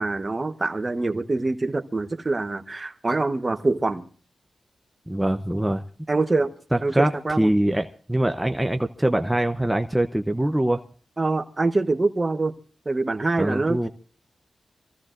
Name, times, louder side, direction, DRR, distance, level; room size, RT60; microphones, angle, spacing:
voice 1, 0.0-4.0 6.1-6.5 6.8-7.5 11.2-12.5 12.8-13.9, right 3 dB, 30° right, 9 dB, 1.1 m, -25 dB
voice 2, 5.1-5.8 6.7-7.1 7.4-10.8 13.4-13.9, right 1 dB, 10° right, 6 dB, 0.8 m, -23 dB
26.5 x 15.0 x 2.6 m, 0.42 s
cardioid pair, 70°, 0 cm